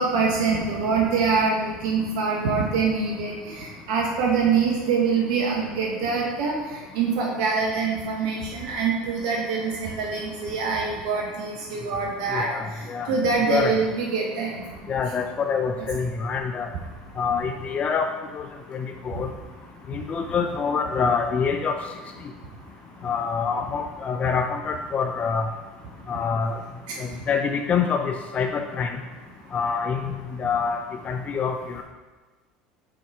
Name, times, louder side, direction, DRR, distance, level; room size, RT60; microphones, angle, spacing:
voice 1, 0.0-6.5 6.9-12.5 13.1-14.5, right 5 dB, 70° right, -2 dB, 0.9 m, -24 dB
voice 2, 12.3-13.1 13.4-13.8 14.9-16.7 17.2-18.1 18.3-18.5 18.7-19.3 19.9-21.8 23.0-25.5 26.1-26.6 27.0-29.0 29.5-30.8 31.0-31.8, left 6 dB, 35° left, 4 dB, 0.4 m, -26 dB
6.2 x 3.7 x 4.5 m, 1.3 s
hypercardioid pair, 80°, 4 cm